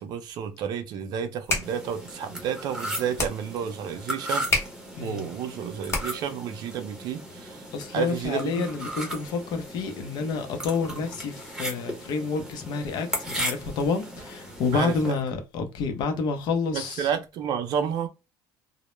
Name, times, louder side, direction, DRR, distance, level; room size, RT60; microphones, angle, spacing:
voice 1, 0.0-4.5 5.0-7.7 7.9-8.7 14.7-15.1 16.7-18.1, right 8 dB, 55° right, 0.5 m, -31 dB
sound 1, 1.2-6.4, left 2 dB, 30° left, 0.9 m, -33 dB
sound 2, 1.6-15.1, right 1 dB, 5° right, 0.8 m, -37 dB
voice 2, 5.0-5.3 7.7-17.1, left 5 dB, 55° left, 0.6 m, -29 dB
2.1 x 2.0 x 3.0 m
cardioid pair, 125°, 9 cm